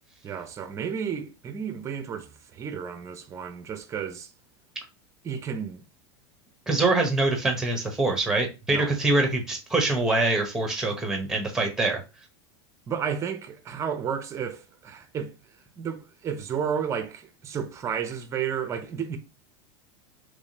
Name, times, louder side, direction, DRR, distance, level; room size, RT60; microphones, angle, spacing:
voice 1, 0.2-4.3 5.2-5.8 8.7-8.9 12.9-15.3 15.8-19.2, right 7 dB, 20° right, 0.6 m, -32 dB
voice 2, 6.7-12.0, right 2 dB, 5° right, 0.9 m, -24 dB
3.5 x 3.2 x 2.8 m
supercardioid pair, 150°, 14 cm